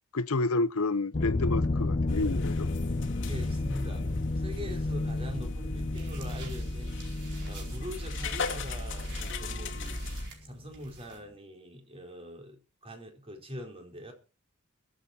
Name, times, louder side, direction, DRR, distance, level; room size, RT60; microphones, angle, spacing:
voice 1, 0.1-2.7, left 3 dB, 75° left, 0.9 m, -29 dB
sound 1, 1.1-10.0, left 2 dB, 35° left, 0.6 m, -33 dB
sound 2, 2.1-10.3, left 2 dB, 60° left, 2.3 m, -36 dB
voice 2, 3.3-7.0 7.4-10.1 10.4-14.1, equal, 25° right, 4.3 m, -43 dB
sound 3, 5.9-11.2, right 4 dB, 55° right, 4.5 m, -50 dB
21.5 x 8.6 x 4.5 m
head